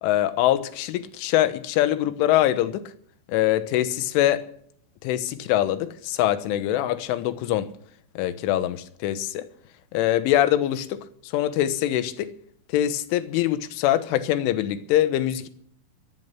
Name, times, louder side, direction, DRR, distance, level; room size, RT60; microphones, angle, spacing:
voice 1, 0.0-2.9 3.3-4.5 5.0-7.7 8.2-9.5 9.9-12.3 12.7-15.5, left 13 dB, 85° left, 3.5 m, -23 dB
23.5 x 10.0 x 6.0 m
omnidirectional pair, 5.7 m